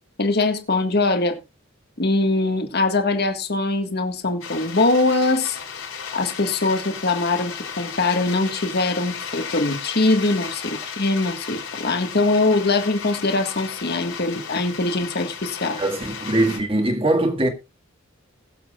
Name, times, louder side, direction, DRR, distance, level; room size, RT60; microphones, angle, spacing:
voice 1, 0.2-1.4 2.0-5.6 6.1-15.8, left 2 dB, 50° left, 1.6 m, -22 dB
sound 1, 4.4-16.6, left 6 dB, 85° left, 4.4 m, -34 dB
voice 2, 15.7-17.5, right 1 dB, 25° right, 1.8 m, -21 dB
20.5 x 7.3 x 2.4 m
head